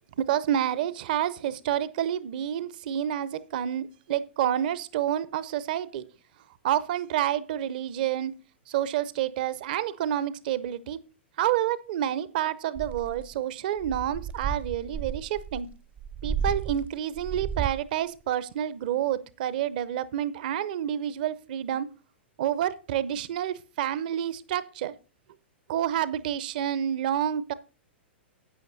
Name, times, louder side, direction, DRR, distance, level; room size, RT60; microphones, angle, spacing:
voice 1, 0.2-6.1 6.6-8.3 8.7-11.0 11.4-15.7 16.2-21.9 22.4-24.9 25.7-27.5, right 11 dB, 50° right, 17 dB, 0.7 m, -29 dB
sound 1, 12.7-13.3 13.8-17.9, right 7 dB, 20° right, 0.3 m, -33 dB
13.0 x 9.0 x 2.6 m, 0.34 s
figure-of-eight pair, 100°, 6 cm